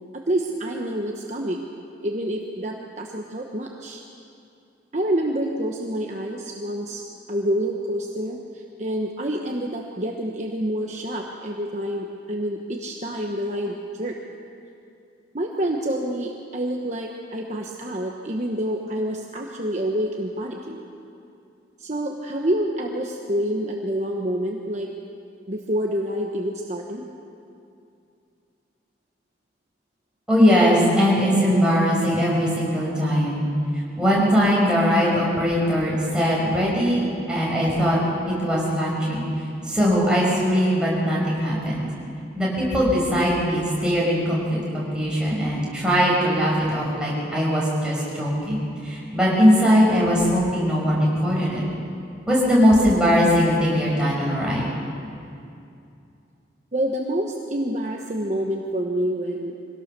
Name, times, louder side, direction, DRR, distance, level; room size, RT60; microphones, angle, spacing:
voice 1, 0.1-1.7 2.0-4.0 4.9-14.2 15.3-20.8 21.8-24.9 25.5-27.0 56.7-59.5, right 1 dB, 40° right, 1 dB, 1.2 m, -27 dB
voice 2, 30.3-33.5 34.0-38.0 38.3-39.2 39.6-41.8 42.4-51.6 52.3-54.7, equal, 5° right, -6 dB, 5.8 m, -20 dB
23.5 x 17.5 x 6.8 m, 2.6 s
head